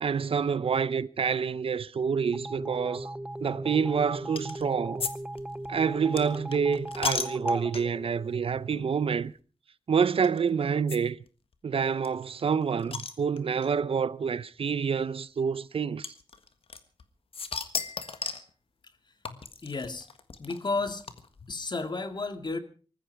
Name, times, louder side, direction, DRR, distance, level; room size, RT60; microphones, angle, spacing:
voice 1, 0.0-3.1 3.4-5.1 5.7-9.3 9.9-11.2 11.6-16.1, right 6 dB, 75° right, 0.7 m, -27 dB
sound 1, 2.3-8.8, right 1 dB, 10° right, 0.8 m, -37 dB
sound 2, 4.4-4.6 5.0-8.1 8.7-8.9 9.1-9.2 10.2-10.4 10.9-11.0 11.3-11.4 11.5-11.6 12.0-13.7 14.6-14.7 16.0-17.0 17.3-18.5 19.3-21.5, left 5 dB, 75° left, 1.6 m, -35 dB
voice 2, 19.6-20.1 20.4-21.0 21.5-22.6, left 3 dB, 50° left, 2.2 m, -32 dB
20.0 x 14.5 x 4.7 m
cardioid pair, 60°, 10 cm